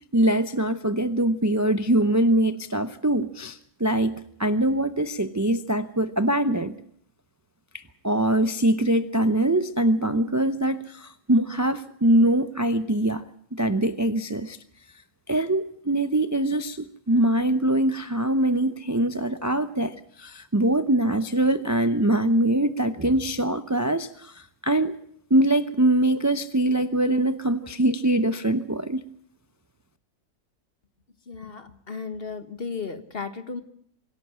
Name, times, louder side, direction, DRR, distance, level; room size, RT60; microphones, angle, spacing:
voice 1, 0.1-6.8 8.0-13.2 13.5-14.6 15.3-25.0 25.3-29.0, right 1 dB, 25° right, 0.4 m, -23 dB
voice 2, 31.3-33.6, left 5 dB, 40° left, 1.7 m, -35 dB
25.5 x 11.5 x 9.8 m
omnidirectional pair, 1.7 m